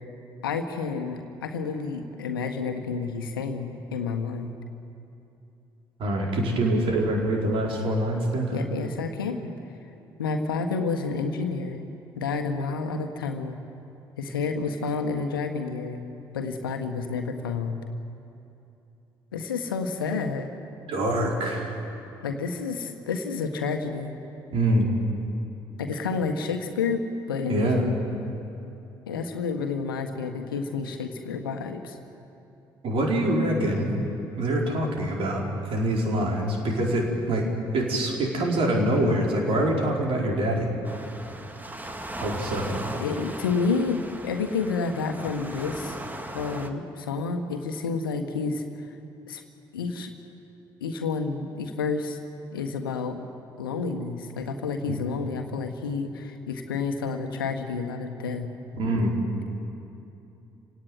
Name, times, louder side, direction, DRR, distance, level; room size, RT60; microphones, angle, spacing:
voice 1, 0.4-4.5 8.5-9.5 10.2-11.9 12.1-13.6 14.2-16.0 16.3-17.8 19.3-20.5 22.2-24.2 25.8-27.9 29.1-32.0 43.0-45.9 46.3-48.6 49.3-49.4 49.7-50.1 50.8-52.2 52.5-53.2 53.6-58.5, left 4 dB, 75° left, 6 dB, 1.6 m, -29 dB
voice 2, 6.0-8.6 20.9-21.8 24.5-24.9 27.5-27.8 32.8-34.1 34.4-37.5 37.7-40.7 42.2-42.8 58.7-59.1, right 1 dB, 50° right, 0 dB, 4.8 m, -25 dB
Waves surf, 40.8-46.7, right 1 dB, 15° right, 2.0 m, -37 dB
28.5 x 18.0 x 9.4 m, 2.8 s
figure-of-eight pair, 50°, 12 cm